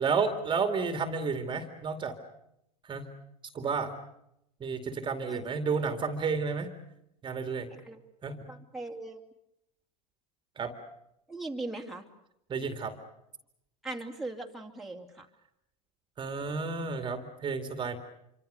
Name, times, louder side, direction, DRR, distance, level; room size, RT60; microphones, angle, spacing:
voice 1, 0.0-2.2 2.9-3.0 3.5-3.9 4.6-6.7 7.2-7.7 8.2-8.4 10.6-10.7 12.5-12.9 16.2-18.0, right 5 dB, 25° right, 8 dB, 2.4 m, -31 dB
voice 2, 8.5-9.2 11.3-12.0 13.8-15.3, right 2 dB, ahead, 0 dB, 2.7 m, -39 dB
27.0 x 25.0 x 6.7 m, 0.81 s
hypercardioid pair, 105°, 20 cm